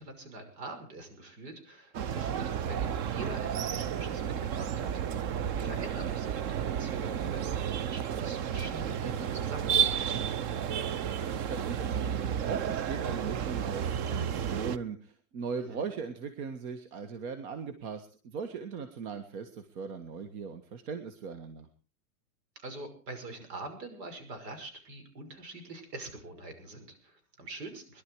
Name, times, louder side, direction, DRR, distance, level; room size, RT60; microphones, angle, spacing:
voice 1, 0.0-5.2 5.5-9.9 15.6-15.9 22.6-28.0, right 2 dB, 85° right, 8 dB, 5.9 m, -44 dB
sound 1, 1.9-14.8, right 8 dB, 35° right, 0.7 m, -32 dB
voice 2, 11.0-21.7, right 5 dB, 60° right, 9 dB, 1.8 m, -39 dB
22.0 x 12.0 x 4.8 m, 0.38 s
supercardioid pair, 145°, 47 cm